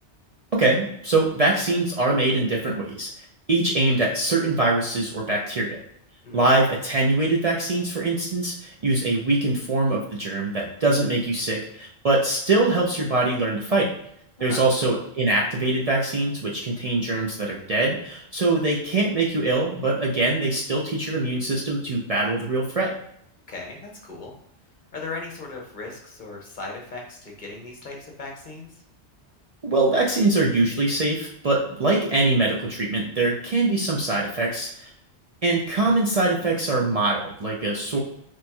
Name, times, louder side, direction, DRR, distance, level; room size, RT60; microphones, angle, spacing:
voice 1, 0.5-3.1 3.5-5.8 6.3-13.9 14.4-22.9 29.6-34.9 35.4-38.0, right 2 dB, 45° right, -3 dB, 0.5 m, -23 dB
voice 2, 23.5-24.3 24.9-28.8 35.8-35.9, left 3 dB, 50° left, 0 dB, 0.9 m, -37 dB
4.2 x 3.1 x 2.2 m, 0.72 s
omnidirectional pair, 1.1 m